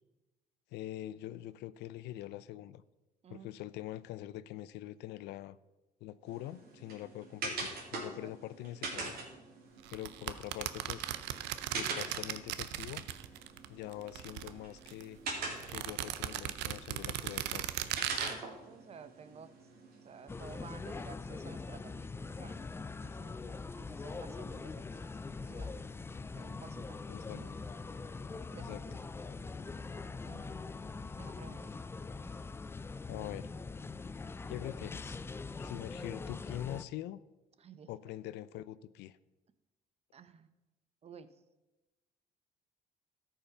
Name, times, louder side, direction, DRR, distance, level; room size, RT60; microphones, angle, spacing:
voice 1, 0.7-2.8 3.3-5.6 6.0-9.2 9.9-11.1 11.7-13.0 13.7-15.2 15.7-17.7 27.1-27.4 28.6-28.8 33.1-33.5 34.5-35.2 35.6-37.2 37.9-39.2, left 14 dB, 80° left, 17 dB, 0.5 m, -44 dB
sound 1, 6.3-20.9, right 3 dB, 65° right, 2.8 m, -44 dB
voice 2, 8.0-8.3 18.1-19.5 20.0-22.6 23.0-25.1 25.5-25.8 26.3-27.6 28.5-29.0 30.3-30.7 31.2-31.7 37.6-37.9 40.1-40.5 41.0-41.3, right 6 dB, 35° right, 13 dB, 0.7 m, -53 dB
sound 2, 9.9-13.7 13.9-15.0 15.6-18.3, right 13 dB, 85° right, 0.6 m, -38 dB
sound 3, 20.3-36.8, left 4 dB, 15° left, 0.3 m, -43 dB
13.0 x 5.6 x 5.7 m, 1.1 s
cardioid pair, 110°, 17 cm